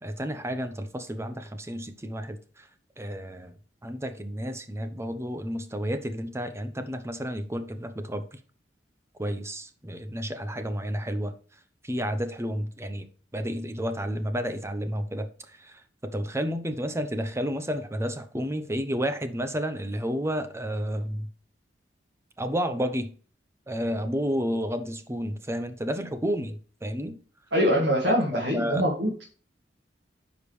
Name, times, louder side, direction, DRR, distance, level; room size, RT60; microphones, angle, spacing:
voice 1, 0.0-2.7 3.0-3.5 3.8-8.4 9.2-11.3 11.8-13.1 13.3-15.3 15.6-21.3 22.4-23.1 23.7-27.2 28.1-28.9, equal, 15° right, 0.8 m, -31 dB
voice 2, 27.5-29.2, equal, 70° right, 2.0 m, -24 dB
9.6 x 5.2 x 3.3 m
head